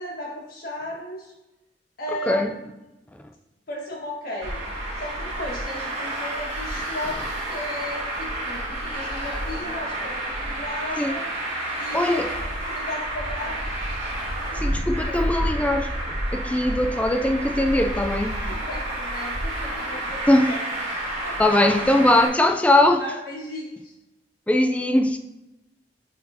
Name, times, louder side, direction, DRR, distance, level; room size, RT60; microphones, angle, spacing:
voice 1, 0.0-1.3 2.0-2.9 3.7-4.6 5.0-11.2 11.8-13.7 14.4-14.6 15.1-15.2 18.4-20.9 21.2-21.4 23.0-23.9, left 1 dB, 55° left, 1.8 m, -35 dB
Traffic noise roadway noise, 4.4-22.3, right 1 dB, 40° right, 2.2 m, -29 dB
voice 2, 11.9-12.3 14.6-15.9 16.3-18.4 20.3-20.5 21.4-23.0 24.5-25.2, left 1 dB, 10° left, 0.4 m, -20 dB
9.7 x 4.3 x 2.8 m
head